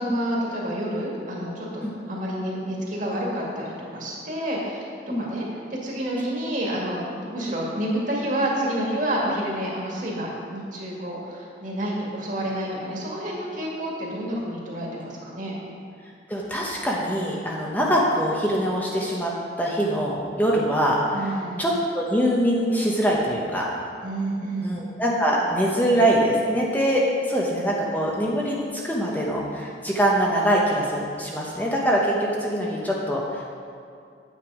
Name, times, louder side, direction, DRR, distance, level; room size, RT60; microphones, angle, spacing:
voice 1, 0.0-4.9 5.2-15.6 21.1-21.6 24.0-24.8, right 1 dB, 45° right, -3 dB, 2.1 m, -29 dB
voice 2, 16.3-23.7 24.6-33.4, equal, 10° left, -4 dB, 0.9 m, -23 dB
9.2 x 8.1 x 4.9 m, 2.3 s
head